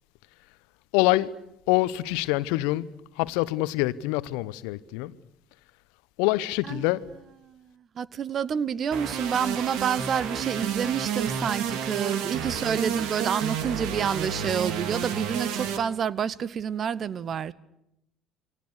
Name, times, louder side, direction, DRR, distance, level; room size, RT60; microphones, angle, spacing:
voice 1, 0.9-1.3 1.7-2.9 3.2-5.2 6.2-7.0, left 18 dB, 65° left, 0.9 m, -25 dB
voice 2, 7.9-17.5, right 7 dB, 40° right, 1.0 m, -28 dB
sound 1, 8.9-15.8, right 8 dB, 60° right, 2.4 m, -31 dB
28.5 x 23.5 x 6.8 m
figure-of-eight pair, 55°, 0 cm